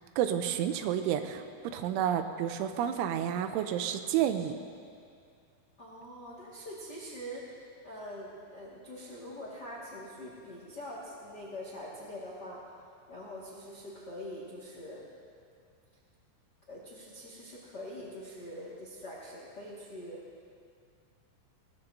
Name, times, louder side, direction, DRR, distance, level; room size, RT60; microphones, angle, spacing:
voice 1, 0.2-1.4 1.7-4.6, right 10 dB, 85° right, 8 dB, 3.1 m, -30 dB
voice 2, 5.8-12.6 13.1-15.0 16.7-20.2, equal, 60° left, -5 dB, 1.0 m, -44 dB
21.0 x 18.5 x 2.7 m, 2.3 s
omnidirectional pair, 5.5 m